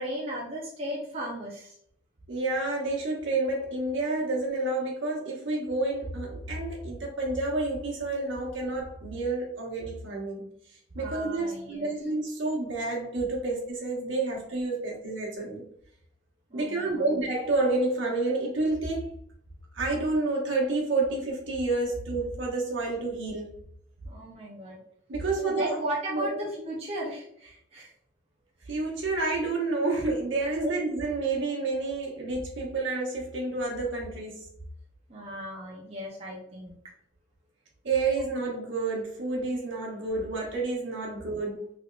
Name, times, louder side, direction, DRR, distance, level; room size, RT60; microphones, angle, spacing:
voice 1, 0.0-1.8 11.0-11.9 16.5-17.1 24.1-24.8 25.4-27.9 28.6-28.7 30.6-30.7 35.1-36.7, equal, 30° right, -4 dB, 0.6 m, -36 dB
voice 2, 2.3-10.4 10.9-15.6 16.5-19.1 19.7-23.5 25.1-25.8 26.1-26.5 28.7-34.4 37.8-41.7, right 3 dB, 70° right, -2 dB, 1.1 m, -29 dB
3.5 x 3.4 x 2.4 m, 0.69 s
head